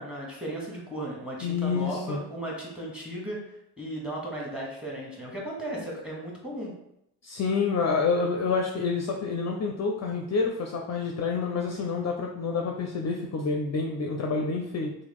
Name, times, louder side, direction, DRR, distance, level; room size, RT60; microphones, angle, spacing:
voice 1, 0.0-3.4 3.8-6.7, right 1 dB, ahead, -2 dB, 1.3 m, -36 dB
voice 2, 1.4-2.2 7.2-14.9, left 4 dB, 35° left, 1 dB, 0.5 m, -28 dB
2.9 x 2.2 x 3.5 m, 0.79 s
hypercardioid pair, 50°, 45 cm